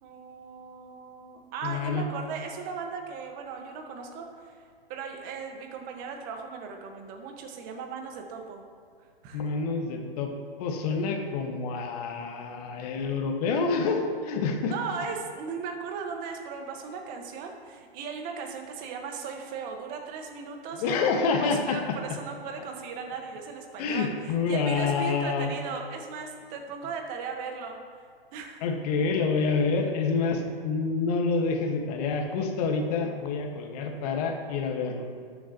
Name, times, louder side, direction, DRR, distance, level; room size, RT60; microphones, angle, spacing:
voice 1, 0.0-8.6 9.0-9.4 14.7-21.1 21.4-27.8 28.3-28.7, right 5 dB, 30° right, 3 dB, 1.5 m, -37 dB
voice 2, 1.6-2.0 9.3-10.3 10.6-14.8 20.8-22.0 23.8-25.5 28.6-35.2, left 4 dB, 40° left, 3 dB, 1.6 m, -27 dB
19.0 x 7.1 x 3.0 m, 2.1 s
hypercardioid pair, 135°, 30 cm